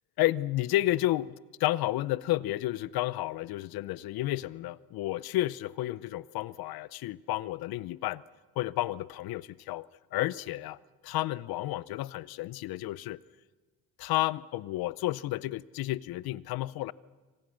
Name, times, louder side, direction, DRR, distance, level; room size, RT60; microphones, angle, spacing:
voice 1, 0.2-8.2 8.6-9.9 10.1-10.8 11.0-13.2 14.0-16.9, left 16 dB, 60° left, 0.7 m, -31 dB
27.5 x 25.5 x 6.4 m
cardioid pair, 155°, 41 cm